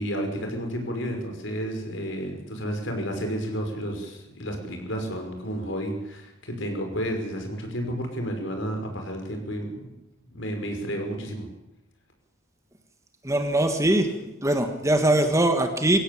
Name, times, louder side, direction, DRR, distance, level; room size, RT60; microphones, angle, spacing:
voice 1, 0.0-9.9 10.3-11.5, equal, 65° left, 4 dB, 5.9 m, -31 dB
voice 2, 13.2-14.1 14.4-16.0, right 1 dB, 15° right, 6 dB, 1.8 m, -21 dB
22.5 x 16.5 x 8.7 m, 0.91 s
head